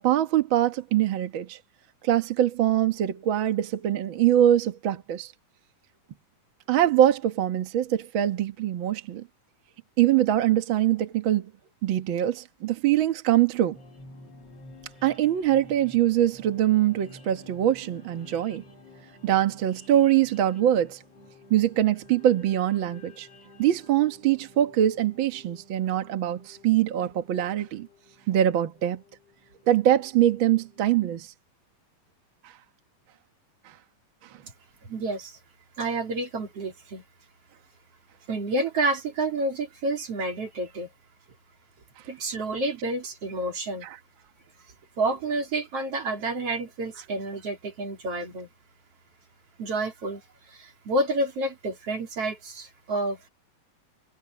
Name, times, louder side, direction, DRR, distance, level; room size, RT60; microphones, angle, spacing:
voice 1, 0.0-1.6 2.0-5.3 6.7-9.2 10.0-11.5 11.8-13.8 15.0-18.6 19.2-21.0 21.5-23.3 23.6-27.9 28.3-29.0 29.7-31.3, right 12 dB, 65° right, 1.2 m, -23 dB
sound 1, 13.7-30.9, left 2 dB, 45° left, 5.6 m, -52 dB
voice 2, 34.8-35.4 35.8-37.0 38.3-40.9 42.1-43.9 45.0-48.5 49.6-50.2 50.5-53.3, right 2 dB, 45° right, 4.0 m, -29 dB
omnidirectional pair, 4.0 m